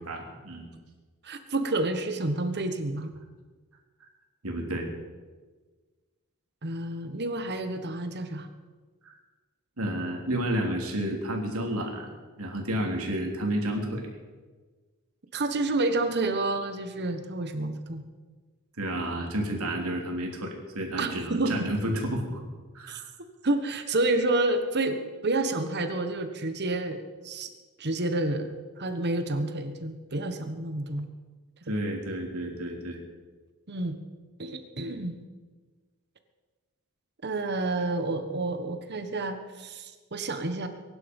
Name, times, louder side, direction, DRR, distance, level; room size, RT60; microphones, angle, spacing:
voice 1, 0.0-0.7 4.4-4.9 9.0-9.2 9.8-12.1 12.4-14.0 18.8-22.4 22.7-23.1 31.7-33.0, right 1 dB, 80° right, 1 dB, 3.4 m, -31 dB
voice 2, 1.2-3.1 6.6-8.5 15.3-18.0 21.0-21.7 22.9-23.0 23.4-27.5 27.8-28.5 28.8-31.1 33.7-34.0 34.4-35.2 37.2-40.7, right 2 dB, 50° right, 8 dB, 1.4 m, -29 dB
23.0 x 11.0 x 5.4 m, 1.4 s
head